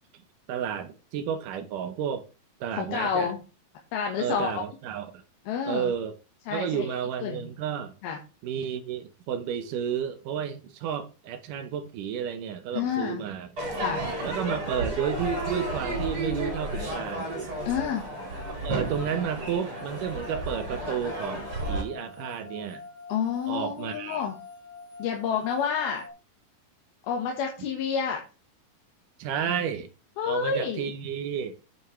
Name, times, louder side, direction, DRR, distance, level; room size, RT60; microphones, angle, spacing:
voice 1, 0.5-2.3 2.6-3.3 4.2-5.2 5.7-6.2 6.5-7.9 8.4-13.5 14.2-17.3 18.5-22.8 23.5-24.3 29.2-29.9 30.3-31.6, right 8 dB, 70° right, 2.3 m, -32 dB
voice 2, 2.7-3.4 3.9-4.6 5.5-5.9 6.5-6.9 7.2-7.5 8.0-8.2 12.7-13.2 13.8-14.1 17.6-18.1 23.1-24.3 25.0-26.1 27.0-28.2 30.2-30.9, left 7 dB, 85° left, 3.3 m, -29 dB
Crowd / Fireworks, 13.6-21.8, right 1 dB, 35° right, 5.2 m, -32 dB
sound 1, 15.9-26.1, left 3 dB, 15° left, 1.2 m, -45 dB
9.3 x 8.7 x 3.2 m
omnidirectional pair, 4.3 m